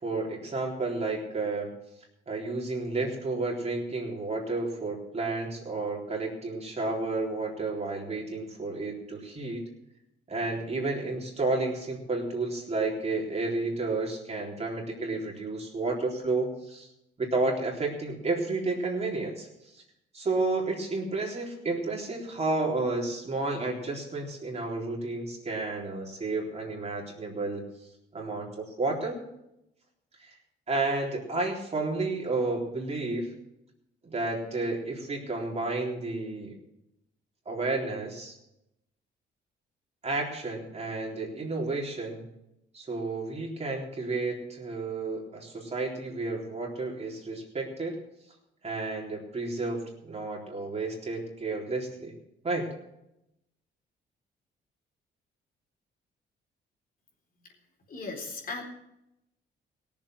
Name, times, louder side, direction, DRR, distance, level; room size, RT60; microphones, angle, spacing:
voice 1, 0.0-1.7 2.3-9.6 10.3-16.9 17.2-19.8 20.1-27.6 28.1-29.2 30.2-30.3 30.7-33.3 34.0-36.6 37.5-38.4 40.0-42.2 42.7-48.0 48.6-52.1 52.4-52.7, right 3 dB, 30° right, -1 dB, 3.8 m, -31 dB
voice 2, 57.9-58.6, left 3 dB, 45° left, 1 dB, 4.0 m, -36 dB
17.0 x 7.4 x 7.6 m, 0.85 s
cardioid pair, 90°, 20 cm